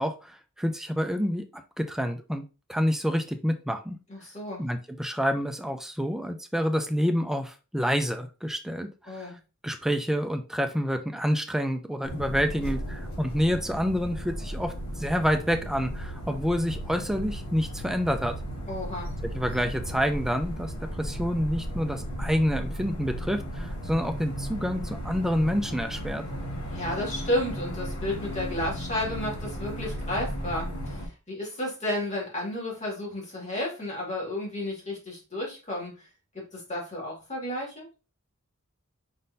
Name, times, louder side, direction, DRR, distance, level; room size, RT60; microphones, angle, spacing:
voice 1, 0.0-1.4 1.8-2.4 2.7-4.0 4.6-9.3 9.6-18.4 19.3-26.2, equal, ahead, 6 dB, 0.5 m, -28 dB
voice 2, 4.1-4.6 9.1-9.4 18.7-19.1 26.7-35.9 36.3-37.9, left 1 dB, 30° left, -2 dB, 2.3 m, -32 dB
sound 1, 12.0-31.1, equal, 70° left, 1.7 m, -35 dB
5.1 x 3.8 x 2.7 m, 0.31 s
head